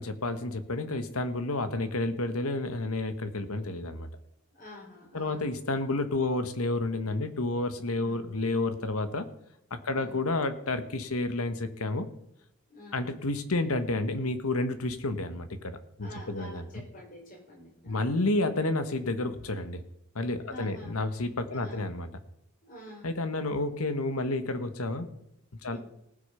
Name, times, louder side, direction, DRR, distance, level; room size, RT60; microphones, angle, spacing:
voice 1, 0.0-4.1 5.1-9.3 9.7-12.1 12.9-16.8 17.8-19.8 20.1-22.1 23.0-25.1 25.6-25.8, left 2 dB, 85° left, 10 dB, 1.3 m, -30 dB
voice 2, 4.5-5.5 7.9-8.4 9.9-10.2 12.7-13.2 16.0-18.1 20.5-21.0 21.5-21.9 22.6-23.1 25.6-25.8, equal, 40° left, -1 dB, 4.5 m, -48 dB
19.0 x 6.4 x 5.7 m, 0.82 s
head